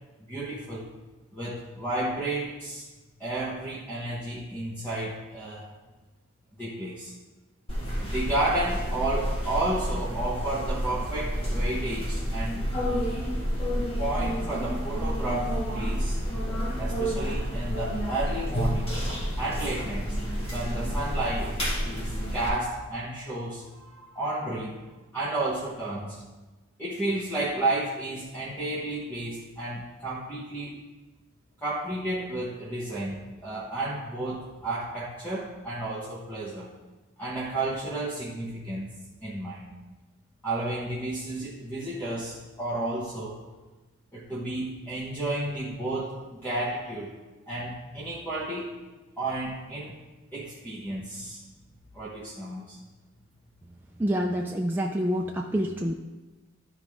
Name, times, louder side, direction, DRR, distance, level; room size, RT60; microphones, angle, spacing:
voice 1, 0.2-0.9 1.3-2.9 3.2-5.7 6.6-7.1 8.0-12.7 14.0-16.2 16.8-18.9 19.4-24.8 25.1-26.2 26.8-30.8 31.6-36.7 37.2-38.9 39.2-39.7 40.4-43.4 44.1-47.2 47.5-48.7 49.2-49.9 50.3-51.4 51.9-52.8, right 2 dB, 10° left, -7 dB, 1.1 m, -32 dB
sound 1, 7.7-22.5, equal, 25° left, 1.7 m, -29 dB
voice 2, 54.0-55.9, equal, 10° right, 0 dB, 0.3 m, -27 dB
13.0 x 4.9 x 3.5 m, 1.2 s
head